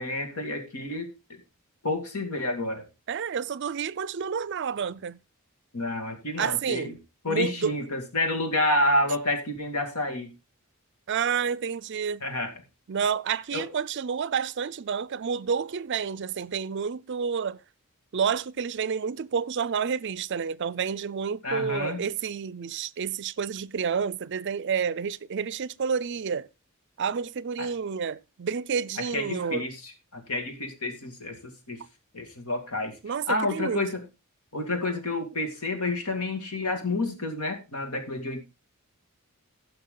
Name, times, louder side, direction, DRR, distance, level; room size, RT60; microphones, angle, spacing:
voice 1, 0.0-1.4 1.8-2.8 5.7-7.0 7.2-10.3 12.2-12.5 13.5-13.7 21.4-22.0 27.6-27.7 29.1-31.8 32.1-33.0 33.3-34.0 34.5-38.4, left 2 dB, 85° left, 2.3 m, -29 dB
voice 2, 3.1-5.2 6.4-6.9 7.3-7.7 11.1-12.2 12.9-17.6 18.1-26.5 27.0-29.7 33.0-33.8, right 6 dB, 55° right, 0.4 m, -29 dB
15.5 x 5.9 x 3.8 m
head